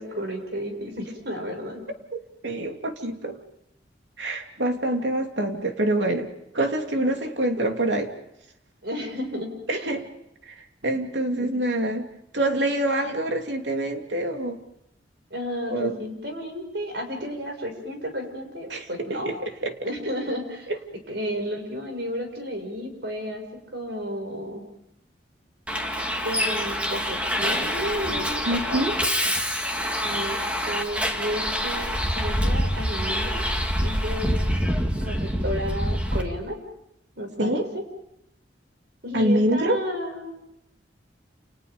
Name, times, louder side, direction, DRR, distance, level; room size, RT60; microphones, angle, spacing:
voice 1, 0.0-1.9 7.6-7.9 8.8-9.8 11.4-11.6 15.3-19.3 19.8-20.7 21.1-23.5 23.7-24.7 26.2-28.9 30.0-30.4 30.7-33.4 33.8-34.5 35.0-36.6 37.2-37.8 39.0-40.4, equal, 65° right, 4 dB, 6.6 m, -32 dB
voice 2, 2.1-3.4 4.2-8.1 9.7-10.0 10.5-12.1 12.3-14.6 15.7-16.0 18.7-19.8 20.7-20.8 28.4-28.9 37.4-37.7 39.1-39.8, right 1 dB, 80° right, 4 dB, 3.0 m, -26 dB
Bus, 25.7-36.2, equal, 5° right, 2.4 m, -26 dB
29.5 x 29.5 x 5.3 m, 0.79 s
head